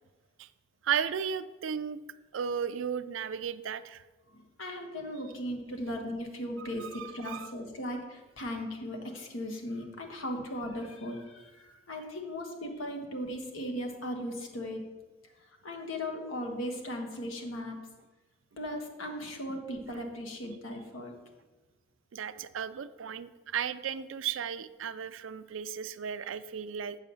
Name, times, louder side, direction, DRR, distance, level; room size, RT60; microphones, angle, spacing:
voice 1, 0.8-2.0 2.3-4.0 6.6-7.5 22.1-27.0, right 7 dB, 75° right, 13 dB, 0.4 m, -35 dB
voice 2, 4.3-14.8 15.6-17.8 18.6-21.1, left 1 dB, 80° left, 2 dB, 1.5 m, -37 dB
8.2 x 4.9 x 7.0 m, 1.2 s
head